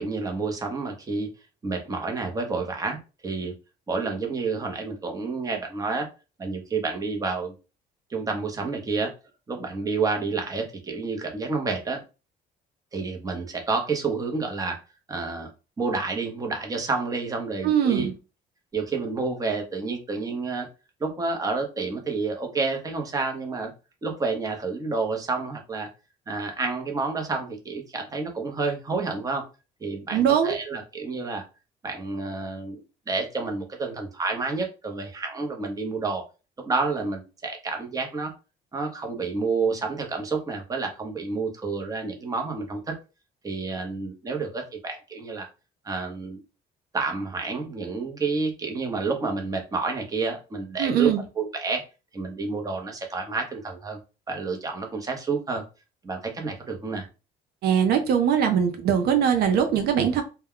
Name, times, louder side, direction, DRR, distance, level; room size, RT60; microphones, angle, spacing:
voice 1, 0.0-1.3 1.6-3.5 3.9-6.1 6.4-7.6 8.1-9.1 9.5-12.0 12.9-14.8 15.1-15.5 15.8-18.1 18.7-20.7 21.0-23.7 24.0-25.9 26.3-29.5 29.8-31.4 31.8-36.2 36.6-38.3 38.7-43.0 43.4-45.5 45.8-46.4 46.9-51.8 52.1-54.0 54.3-55.6 56.0-57.0, right 4 dB, 20° right, 0.7 m, -29 dB
voice 2, 17.6-18.1 30.1-30.6 50.8-51.2 57.6-60.2, right 8 dB, 70° right, 0.5 m, -21 dB
2.2 x 2.2 x 3.6 m
cardioid pair, 110°, 17 cm